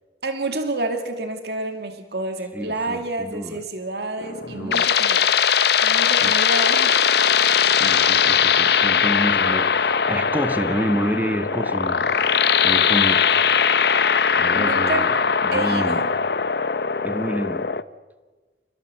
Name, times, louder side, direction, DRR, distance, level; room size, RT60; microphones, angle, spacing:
voice 1, 0.2-5.3 5.8-6.9 14.5-15.1 15.5-16.1, right 2 dB, 65° right, 2.4 m, -29 dB
voice 2, 2.5-3.6 4.5-4.9 6.2-6.3 7.7-12.1 12.6-13.4 14.4-15.2 15.4-16.0 17.0-17.7, equal, 10° right, 1.4 m, -28 dB
sound 1, 4.2-17.8, left 7 dB, 65° left, 0.7 m, -20 dB
28.5 x 20.5 x 7.7 m
head